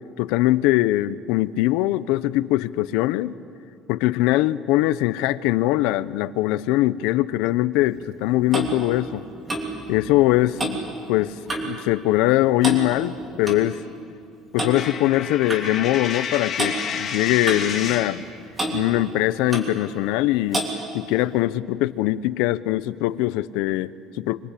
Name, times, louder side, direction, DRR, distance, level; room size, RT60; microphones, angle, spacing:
voice 1, 0.2-3.3 3.9-9.2 9.9-13.8 14.5-18.2 18.7-20.6 20.9-23.9 24.3-24.4, left 16 dB, 80° left, 16 dB, 0.7 m, -22 dB
Clock, 8.0-11.8 12.1-12.4 12.6-13.6 14.6-14.8 15.5-15.7 16.6-16.8 17.5-18.3 18.6-18.8 19.5-19.8 20.5-20.8, right 2 dB, 15° right, 3.1 m, -29 dB
Coin (dropping), 14.7-18.2, left 7 dB, 35° left, 2.0 m, -30 dB
26.0 x 24.0 x 8.5 m, 2.5 s
cardioid pair, 165°, 0 cm